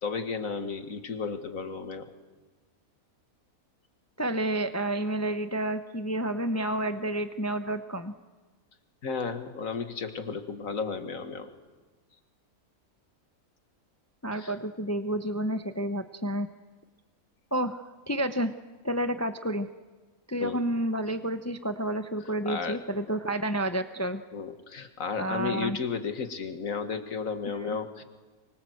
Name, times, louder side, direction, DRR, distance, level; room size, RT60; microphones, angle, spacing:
voice 1, 0.0-2.1 9.0-11.5 14.3-14.5 20.4-20.6 22.5-22.8 24.3-28.0, left 5 dB, 65° left, 8 dB, 2.1 m, -33 dB
voice 2, 4.2-8.1 14.2-16.5 17.5-18.5 18.8-19.7 20.3-24.2 25.2-25.8 27.5-27.8, right 1 dB, 15° left, 8 dB, 0.8 m, -30 dB
25.0 x 24.5 x 7.9 m, 1.3 s
omnidirectional pair, 1.5 m